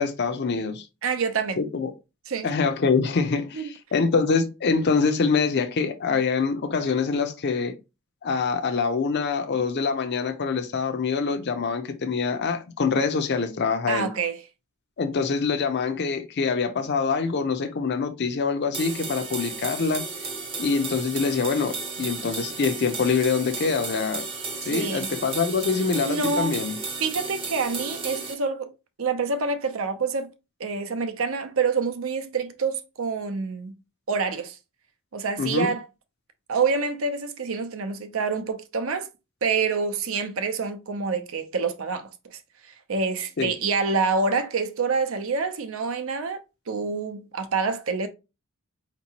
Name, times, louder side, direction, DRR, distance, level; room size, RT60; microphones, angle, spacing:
voice 1, 0.0-0.9 1.6-1.9 2.4-7.7 8.2-14.1 15.0-20.0 20.6-24.2 24.6-26.8 35.4-35.7 43.4-43.5, left 5 dB, 50° left, 0.5 m, -25 dB
voice 2, 1.0-1.6 2.3-2.5 3.5-3.6 13.9-14.4 24.6-25.1 26.0-26.6 27.0-28.7 29.0-30.3 30.6-33.8 34.1-34.6 35.1-35.9 36.5-39.1 39.4-42.1 42.9-46.4 46.7-48.1, right 4 dB, 65° right, 0.6 m, -27 dB
sound 1, 18.7-28.3, right 4 dB, 25° right, 0.8 m, -34 dB
4.6 x 2.9 x 2.8 m
head